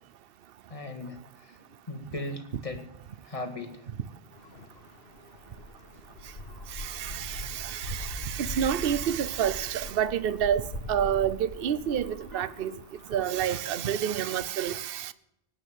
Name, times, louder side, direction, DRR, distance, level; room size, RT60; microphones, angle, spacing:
voice 1, 0.7-2.8 3.2-3.9, left 2 dB, 30° left, 2.1 m, -38 dB
sound 1, 4.3-14.4, left 2 dB, 65° left, 1.5 m, -42 dB
voice 2, 6.7-12.7 13.1-15.1, right 9 dB, 60° right, 0.9 m, -29 dB
18.0 x 9.2 x 7.3 m
omnidirectional pair, 1.2 m